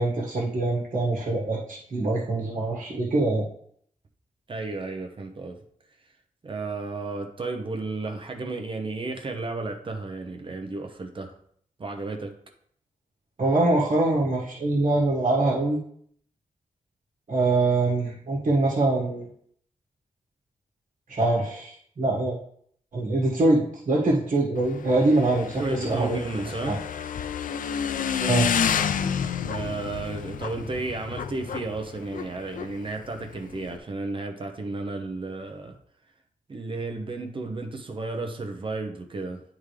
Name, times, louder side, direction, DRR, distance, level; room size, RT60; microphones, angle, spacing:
voice 1, 0.0-3.4 13.4-15.8 17.3-19.3 21.1-22.4 22.9-26.2 26.6-26.8 28.2-28.5, right 2 dB, 55° right, -4 dB, 1.7 m, -24 dB
voice 2, 4.5-5.6 6.4-11.3 11.8-12.3 25.6-26.8 29.4-35.8 36.5-39.4, right 3 dB, 35° right, 4 dB, 0.8 m, -33 dB
Motorcycle / Engine, 24.6-33.8, left 7 dB, 70° left, 0.4 m, -30 dB
11.0 x 3.7 x 3.3 m, 0.64 s
wide cardioid pair, 145°, 14 cm